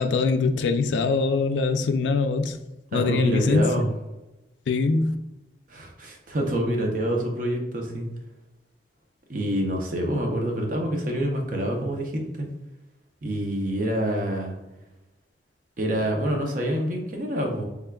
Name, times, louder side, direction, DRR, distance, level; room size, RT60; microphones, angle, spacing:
voice 1, 0.0-2.6 2.9-3.7 4.7-5.2, left 4 dB, 80° left, 0.3 m, -23 dB
voice 2, 2.9-3.9 5.7-8.1 9.3-12.5 13.2-14.6 15.8-17.6, right 1 dB, 45° right, 0.6 m, -26 dB
3.4 x 3.4 x 2.2 m
head